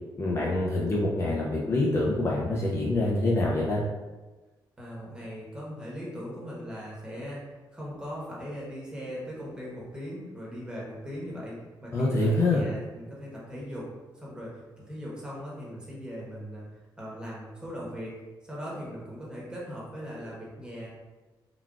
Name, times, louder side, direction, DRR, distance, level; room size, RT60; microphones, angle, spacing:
voice 1, 0.2-3.8 11.9-12.6, left 2 dB, 35° left, -5 dB, 0.5 m, -25 dB
voice 2, 4.8-13.9 14.1-16.6 17.0-18.2 18.4-20.9, equal, 10° right, -6 dB, 1.1 m, -39 dB
3.8 x 2.3 x 2.3 m, 1.2 s
cardioid pair, 110°, 8 cm